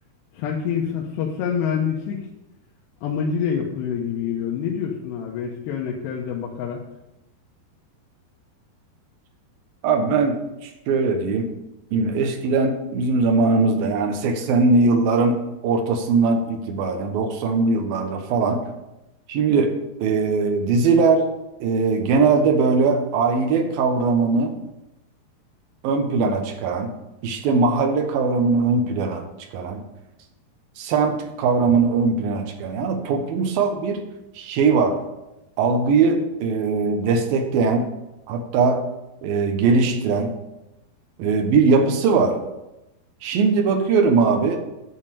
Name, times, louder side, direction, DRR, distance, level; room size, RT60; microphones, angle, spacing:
voice 1, 0.3-2.3 3.0-6.8, left 7 dB, 90° left, -2 dB, 3.1 m, -26 dB
voice 2, 9.8-10.4 10.6-11.5 11.9-15.4 15.6-18.6 19.3-21.3 21.6-24.6 25.8-26.9 27.2-29.2 29.5-29.8 30.8-34.0 34.4-35.0 35.6-37.9 38.3-38.9 39.2-40.3 41.2-42.4 43.2-44.6, right 4 dB, 70° right, 5 dB, 2.7 m, -20 dB
9.6 x 5.5 x 7.0 m, 0.93 s
omnidirectional pair, 4.8 m